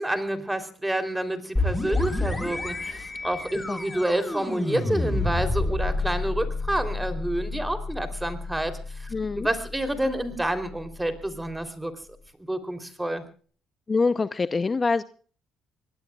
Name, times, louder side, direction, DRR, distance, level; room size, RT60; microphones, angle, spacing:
voice 1, 0.0-11.9 12.4-13.2, right 1 dB, 10° right, 9 dB, 3.5 m, -29 dB
sound 1, 1.6-11.1, left 2 dB, 10° left, 5.1 m, -30 dB
voice 2, 9.1-9.5 13.9-15.0, left 4 dB, 30° left, 12 dB, 0.8 m, -24 dB
25.5 x 19.0 x 2.4 m, 0.43 s
cardioid pair, 85°, 0 cm